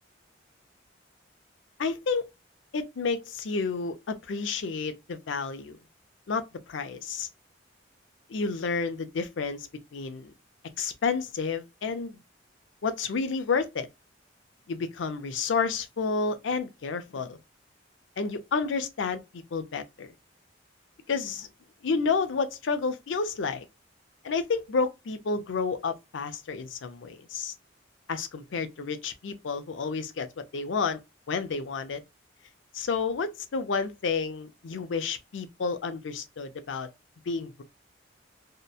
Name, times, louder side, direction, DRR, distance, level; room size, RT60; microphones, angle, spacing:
voice 1, 1.8-2.3 2.7-5.8 6.3-7.3 8.3-10.3 10.8-12.2 12.8-13.9 14.7-17.4 18.2-20.1 21.1-21.5 21.8-23.6 24.2-27.5 28.1-31.0 31.3-32.0 32.7-36.9 37.3-37.6, left 4 dB, 80° left, 0.5 m, -30 dB
2.8 x 2.1 x 2.3 m
head